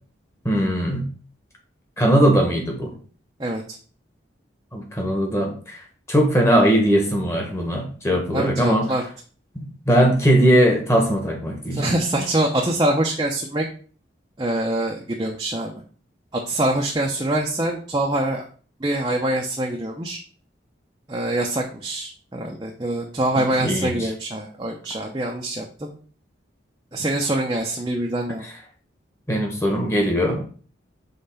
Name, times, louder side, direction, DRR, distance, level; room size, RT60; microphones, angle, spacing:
voice 1, 0.4-1.0 2.0-2.9 4.7-5.8 6.1-9.0 9.5-11.9 23.4-24.1 28.4-28.5 29.3-30.5, equal, 15° left, 1 dB, 1.4 m, -20 dB
voice 2, 8.3-9.0 11.7-13.7 14.4-15.7 16.3-18.5 18.8-20.2 21.1-25.9 26.9-28.5, right 1 dB, 20° right, -1 dB, 0.7 m, -24 dB
5.6 x 3.8 x 5.6 m, 0.42 s
head